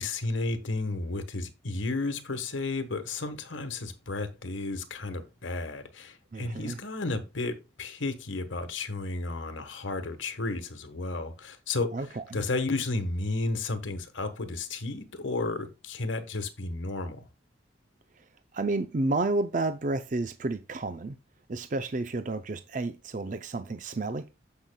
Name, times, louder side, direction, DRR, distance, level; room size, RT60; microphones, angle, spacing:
voice 1, 0.0-12.0 12.3-17.3, left 3 dB, 80° left, 1.3 m, -33 dB
voice 2, 6.3-6.8 11.9-12.4 18.5-21.2 21.5-24.3, right 2 dB, 40° right, 0.5 m, -31 dB
15.5 x 5.7 x 2.2 m
head